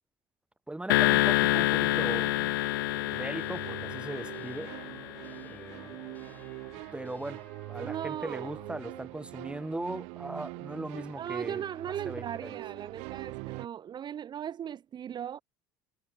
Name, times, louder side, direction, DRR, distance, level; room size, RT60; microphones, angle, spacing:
voice 1, 0.7-2.3 2.9-4.7 5.4-6.0 6.9-12.6, right 2 dB, 10° right, 2.7 m, -39 dB
sound 1, 0.9-5.4, left 19 dB, 85° left, 0.4 m, -27 dB
sound 2, 1.2-13.7, right 33 dB, 75° right, 1.0 m, -43 dB
sound 3, 3.4-9.1, left 2 dB, 15° left, 8.0 m, -55 dB
voice 2, 7.8-8.6 11.2-15.4, right 9 dB, 40° right, 0.9 m, -38 dB
hypercardioid pair, 80°, 11 cm